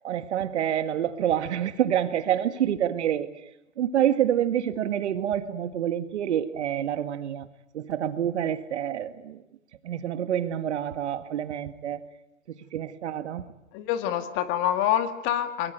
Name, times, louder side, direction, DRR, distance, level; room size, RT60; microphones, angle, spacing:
voice 1, 0.0-3.3 3.8-7.5 7.7-9.4 9.8-12.0 12.5-13.5, right 10 dB, 55° right, 1.8 m, -27 dB
voice 2, 13.7-15.7, left 11 dB, 30° left, 2.1 m, -26 dB
23.0 x 22.5 x 9.2 m
hypercardioid pair, 135°, 40 cm